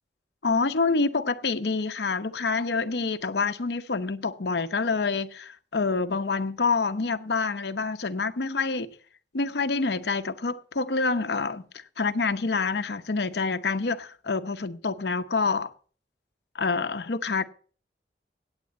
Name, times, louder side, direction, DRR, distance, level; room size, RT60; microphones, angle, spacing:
voice 1, 0.4-8.9 9.3-15.7 16.5-17.5, left 4 dB, 75° left, 0.8 m, -27 dB
8.9 x 8.4 x 7.9 m
head